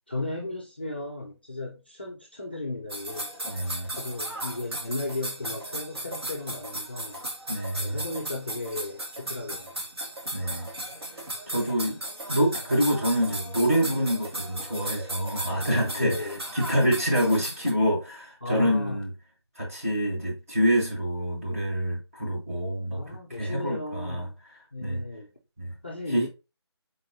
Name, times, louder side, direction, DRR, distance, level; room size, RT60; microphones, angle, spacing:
voice 1, 0.1-3.3 4.0-7.2 7.8-9.7 15.6-16.4 18.4-19.0 22.9-24.3 24.7-25.3 25.8-26.3, left 2 dB, 25° left, 0.4 m, -35 dB
sound 1, 2.9-17.7, right 1 dB, 65° right, 1.5 m, -36 dB
voice 2, 3.5-3.9 7.5-8.0 10.3-10.7 11.5-12.0 12.3-19.1 19.5-24.3 24.8-25.0 25.6-25.7 26.1-26.3, equal, 30° right, 1.6 m, -26 dB
4.9 x 4.0 x 2.7 m
figure-of-eight pair, 165°, 14 cm